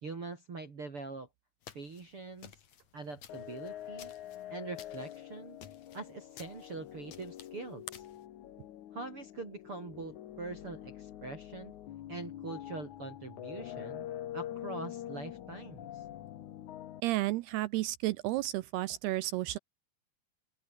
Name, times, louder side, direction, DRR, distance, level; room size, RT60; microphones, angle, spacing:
voice 1, 0.0-1.3 1.7-2.5 2.9-4.1 4.5-5.6 5.9-7.9 8.9-11.7 12.1-14.1 14.3-16.0, right 3 dB, 35° right, 3.4 m, -43 dB
sound 1, 1.6-8.2, left 9 dB, 50° left, 2.6 m, -53 dB
sound 2, 3.3-17.0, left 12 dB, 65° left, 1.9 m, -45 dB
voice 2, 17.0-19.6, right 17 dB, 80° right, 2.4 m, -32 dB
open air
omnidirectional pair, 5.2 m